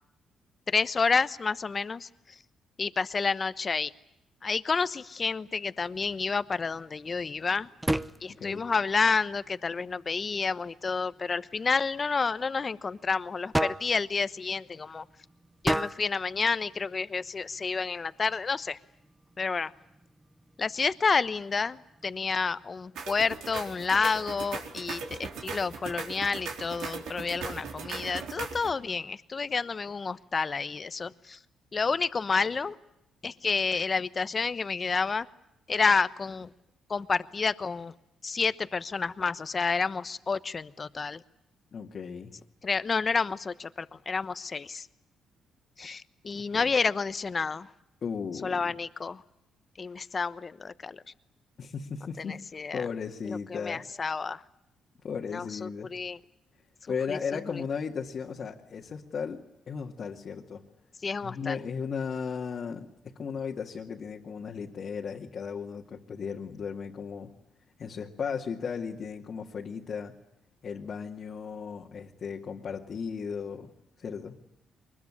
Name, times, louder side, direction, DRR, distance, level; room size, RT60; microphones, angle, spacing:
voice 1, 0.7-2.1 2.8-3.9 4.4-7.7 8.2-15.0 15.6-18.8 19.4-19.7 20.6-31.4 31.7-32.7 33.2-35.3 35.7-36.5 36.9-37.9 38.2-41.2 42.6-44.9 45.8-47.7 48.4-49.2 49.8-51.0 52.2-52.8 53.2-54.4 55.3-56.2 57.1-57.4 61.0-61.6, left 4 dB, 35° left, 15 dB, 1.0 m, -29 dB
sound 1, 5.8-22.7, right 1 dB, 10° right, 0.9 m, -39 dB
sound 2, 23.0-28.7, right 5 dB, 80° right, 4.2 m, -39 dB
voice 2, 41.7-42.3 46.5-46.7 48.0-48.8 51.6-52.4 52.7-53.8 55.0-55.9 56.9-60.6 61.2-67.3 67.8-70.1 70.6-73.7 74.0-74.4, left 6 dB, 50° left, 0 dB, 2.0 m, -36 dB
23.5 x 21.0 x 9.8 m, 0.86 s
cardioid pair, 90°, 0 cm